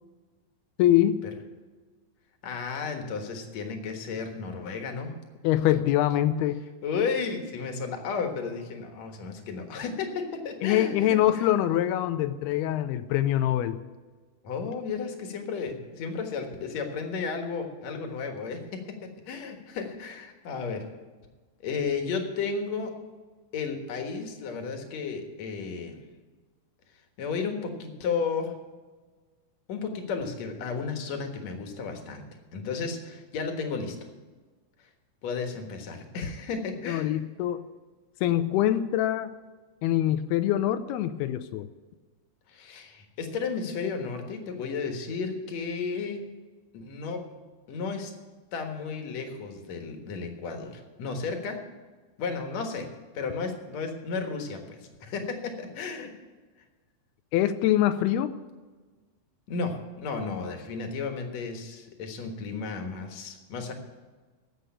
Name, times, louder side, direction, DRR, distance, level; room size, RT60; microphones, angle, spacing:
voice 1, 0.8-1.2 5.4-6.6 10.6-13.8 36.9-37.7 38.2-39.3 39.8-41.7 57.3-58.3, left 12 dB, 85° left, 11 dB, 2.5 m, -24 dB
voice 2, 2.4-5.1 6.8-11.2 14.4-18.6 19.3-20.9 21.6-22.9 23.5-26.0 27.2-28.5 29.7-32.3 32.5-34.0 35.2-37.1 42.5-46.2 46.7-47.2 47.7-48.1 48.5-51.6 52.2-52.9 53.1-56.1 59.5-63.7, left 5 dB, 55° left, 5 dB, 2.2 m, -33 dB
12.0 x 7.7 x 8.7 m, 1.4 s
omnidirectional pair, 4.7 m